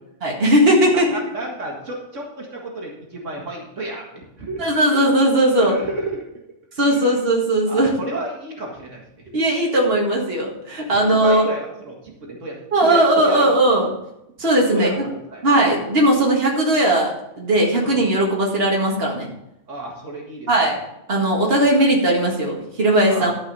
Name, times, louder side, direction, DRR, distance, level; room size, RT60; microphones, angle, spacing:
voice 1, 0.2-1.2 4.6-5.8 6.8-7.9 9.3-11.5 12.7-13.9 14.4-15.1 15.4-19.3 20.5-20.8 21.1-23.3, right 1 dB, 55° right, -2 dB, 2.2 m, -18 dB
voice 2, 1.1-4.6 5.6-6.2 6.9-7.1 7.7-9.0 10.9-12.6 12.8-13.5 14.7-15.0 15.3-15.8 17.8-17.9 19.7-20.5 21.4-21.7 23.1-23.3, right 2 dB, 85° right, -1 dB, 2.2 m, -31 dB
12.5 x 5.4 x 5.4 m, 0.84 s
omnidirectional pair, 1.2 m